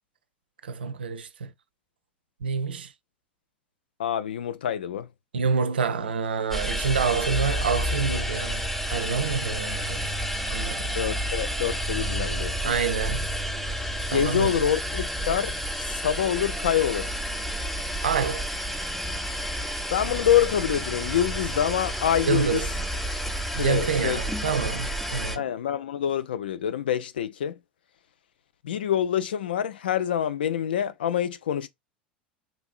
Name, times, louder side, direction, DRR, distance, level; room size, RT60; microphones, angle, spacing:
voice 1, 0.6-1.5 2.4-2.9 5.3-10.1 10.5-10.9 12.6-13.3 14.1-14.6 18.0-18.5 22.2-22.7 23.6-25.4, right 5 dB, 75° right, 0.4 m, -27 dB
voice 2, 4.0-5.1 11.0-12.7 14.1-17.1 19.9-22.6 23.6-24.5 25.4-27.6 28.6-31.7, left 10 dB, 70° left, 0.4 m, -26 dB
sound 1, 6.5-25.4, equal, 5° left, 0.6 m, -30 dB
3.1 x 2.6 x 2.4 m
figure-of-eight pair, 80°, 5 cm